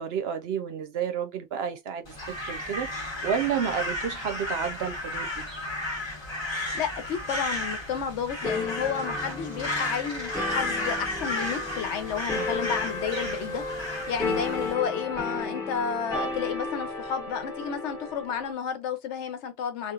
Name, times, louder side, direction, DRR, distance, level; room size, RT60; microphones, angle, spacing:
voice 1, 0.0-2.9 3.2-5.4 12.3-12.5 14.2-14.4, right 8 dB, 65° right, 0.8 m, -31 dB
Crow, 2.1-14.7, left 1 dB, 25° left, 1.1 m, -33 dB
voice 2, 6.7-13.6 13.9-19.9, left 7 dB, 80° left, 1.0 m, -31 dB
sound 1, 8.4-18.5, left 3 dB, 5° left, 1.4 m, -33 dB
3.0 x 2.5 x 2.3 m
omnidirectional pair, 1.2 m